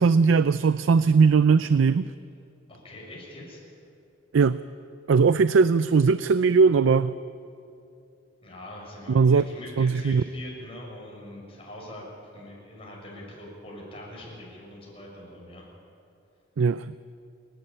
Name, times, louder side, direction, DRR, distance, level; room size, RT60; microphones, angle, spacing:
voice 1, 0.0-2.1 4.3-4.6 5.1-7.2 9.1-9.4 9.8-10.2 16.6-17.0, right 5 dB, 80° right, 14 dB, 0.4 m, -19 dB
voice 2, 2.7-3.6 8.4-12.1 12.3-15.7, left 1 dB, 30° left, -3 dB, 6.9 m, -42 dB
28.5 x 11.5 x 9.0 m, 2.6 s
head